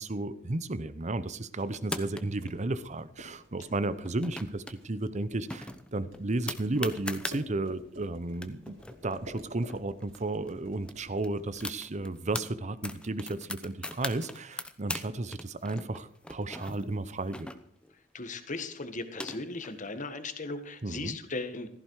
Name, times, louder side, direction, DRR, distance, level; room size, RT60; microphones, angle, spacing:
voice 1, 0.0-8.8 9.0-17.5 20.8-21.2, right 2 dB, 35° right, 15 dB, 0.8 m, -33 dB
sound 1, 1.3-12.3, equal, 85° right, 4.7 m, -53 dB
sound 2, 1.7-2.5 4.0-4.8 5.1-5.2 5.5-7.4 8.0-8.1 8.3-10.2 10.5-10.6 10.8-12.5 12.8-15.1 15.3-17.9 18.8-19.7, left 1 dB, 5° left, 0.9 m, -39 dB
voice 2, 18.1-21.7, left 3 dB, 40° left, 9 dB, 1.6 m, -37 dB
16.0 x 14.5 x 4.8 m, 0.65 s
head